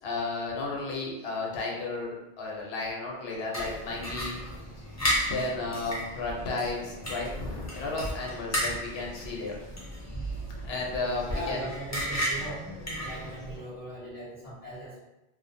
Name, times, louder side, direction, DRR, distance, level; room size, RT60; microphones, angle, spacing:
voice 1, 0.0-4.4 5.3-9.6 10.6-11.7, left 3 dB, 80° left, -2 dB, 0.8 m, -33 dB
sound 1, 3.5-13.6, equal, 20° left, 0.4 m, -34 dB
voice 2, 11.3-12.7 12.9-15.0, right 1 dB, 20° right, -11 dB, 1.1 m, -39 dB
2.5 x 2.3 x 2.5 m, 0.96 s
omnidirectional pair, 1.0 m